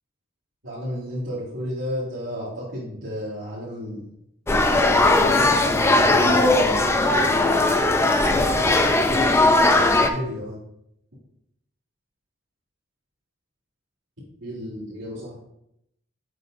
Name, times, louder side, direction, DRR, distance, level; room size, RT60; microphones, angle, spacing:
voice 1, 0.6-4.1 4.9-6.8 8.7-8.8 9.9-10.6 14.4-15.3, equal, 85° right, -10 dB, 2.5 m, -33 dB
sound 1, 4.5-10.1, left 2 dB, 15° left, 0.4 m, -18 dB
7.8 x 6.0 x 2.6 m, 0.78 s
head